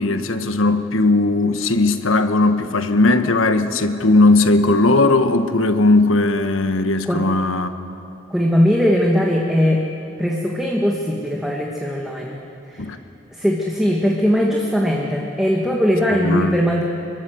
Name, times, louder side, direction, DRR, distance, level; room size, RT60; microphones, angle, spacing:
voice 1, 0.0-7.7 12.8-13.0 16.2-16.6, left 2 dB, 80° left, 9 dB, 1.3 m, -17 dB
voice 2, 8.3-9.8 10.2-12.4 12.7-12.8 13.3-16.8, equal, ahead, -2 dB, 1.6 m, -19 dB
26.0 x 21.5 x 8.0 m, 2.9 s
head